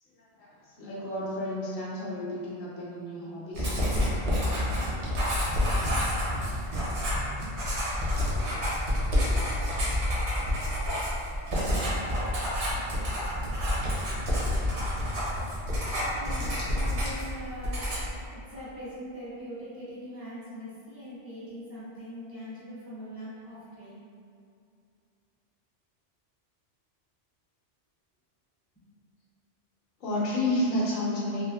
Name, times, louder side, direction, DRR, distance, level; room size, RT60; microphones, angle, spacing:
voice 1, 0.2-3.8 30.0-31.4, left 1 dB, 60° left, -7 dB, 0.7 m, -31 dB
Writing, 3.5-17.3 17.6-18.2, left 1 dB, 70° right, 1.0 m, -28 dB
voice 2, 16.1-17.8 18.3-23.9, equal, 25° left, -12 dB, 0.6 m, -42 dB
3.2 x 2.0 x 2.3 m, 2.4 s
omnidirectional pair, 1.2 m